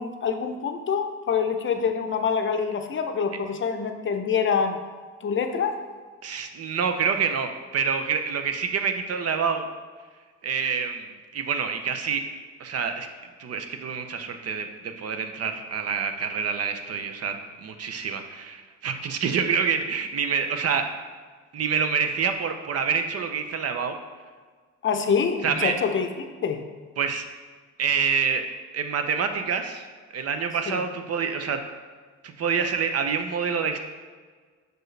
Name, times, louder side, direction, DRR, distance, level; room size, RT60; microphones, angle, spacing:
voice 1, 0.0-4.8 5.2-5.8 24.8-26.6 30.7-30.8, left 6 dB, 40° left, 7 dB, 0.6 m, -26 dB
voice 2, 6.2-9.7 10.4-12.2 12.6-13.1 13.4-20.9 21.5-24.0 25.4-25.7 27.0-27.3 27.8-28.4 28.7-29.8 30.1-31.6 32.2-33.8, right 6 dB, 55° right, 7 dB, 0.7 m, -27 dB
6.4 x 4.5 x 3.3 m, 1.5 s
cardioid pair, 90°, 30 cm